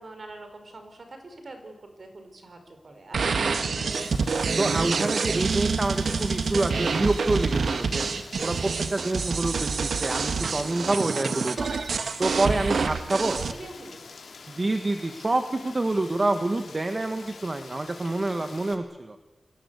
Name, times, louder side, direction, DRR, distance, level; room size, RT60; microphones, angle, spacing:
voice 1, 0.0-3.4 12.8-12.9 13.4-14.0, right 2 dB, 45° right, 6 dB, 5.0 m, -44 dB
sound 1, 3.1-13.5, right 5 dB, 75° right, 1.5 m, -27 dB
voice 2, 3.5-4.1 4.6-8.1 8.4-13.4 14.5-19.2, right 2 dB, 30° right, 7 dB, 1.5 m, -27 dB
Rain, 3.9-18.7, left 5 dB, 85° left, 3.3 m, -46 dB
29.5 x 21.5 x 8.3 m, 1.1 s
wide cardioid pair, 150°, 0 cm